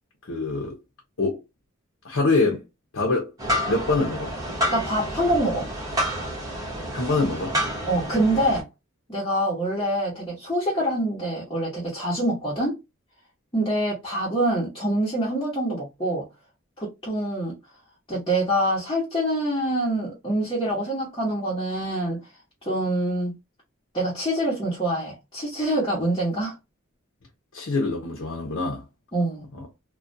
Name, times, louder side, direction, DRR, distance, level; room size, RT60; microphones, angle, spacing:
voice 1, 0.2-0.8 1.2-1.4 2.0-2.6 2.9-3.3 3.7-4.3 6.9-7.6 27.5-28.8 29.5-29.7, left 3 dB, 70° left, 0.6 m, -24 dB
sound 1, 3.4-8.6, equal, 20° right, 0.9 m, -29 dB
voice 2, 4.7-5.7 7.9-8.7 9.1-12.8 13.5-16.3 16.8-17.6 18.1-22.2 22.6-23.3 23.9-26.5 29.1-29.5, right 1 dB, 20° left, 1.0 m, -25 dB
2.4 x 2.2 x 2.5 m
head